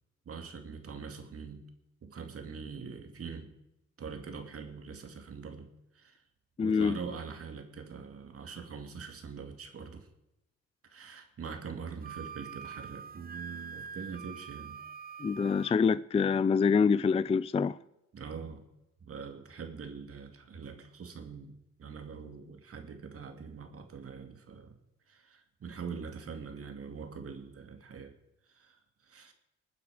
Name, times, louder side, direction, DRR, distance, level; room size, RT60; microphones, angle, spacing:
voice 1, 0.3-1.7 2.0-3.5 4.0-6.2 6.6-10.1 10.8-14.8 15.4-15.5 18.1-18.7 19.0-24.7 25.1-28.1 28.5-29.3, right 5 dB, 50° right, 2.6 m, -43 dB
voice 2, 6.6-7.0 15.2-17.8, left 5 dB, 20° left, 0.4 m, -26 dB
Wind instrument woodwind instrument, 12.0-15.8, right 6 dB, 30° right, 0.5 m, -45 dB
20.5 x 9.5 x 5.0 m
cardioid pair, 90°, 30 cm